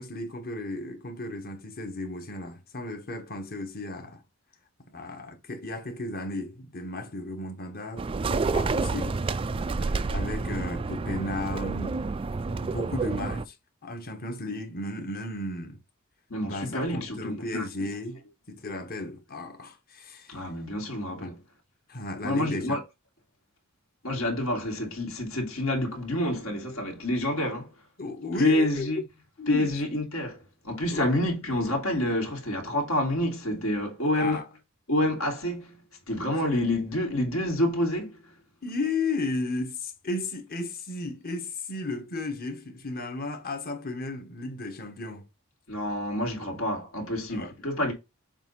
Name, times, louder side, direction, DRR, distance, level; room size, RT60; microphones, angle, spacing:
voice 1, 0.0-4.2 4.9-9.2 9.6-11.9 12.6-13.5 13.8-15.8 16.3-18.2 18.5-20.4 21.2-21.3 21.9-22.8 28.0-28.9 29.4-29.7 30.9-31.1 34.1-34.4 36.3-36.4 38.6-45.2 47.3-47.9, left 2 dB, 45° left, 1.4 m, -34 dB
sound 1, 8.0-13.4, right 4 dB, 25° right, 0.3 m, -29 dB
voice 2, 16.3-17.6 20.3-21.4 22.2-22.8 24.0-27.7 28.4-29.0 29.5-34.4 34.9-38.4 45.7-47.9, left 1 dB, 75° left, 2.5 m, -28 dB
7.2 x 2.6 x 5.4 m
head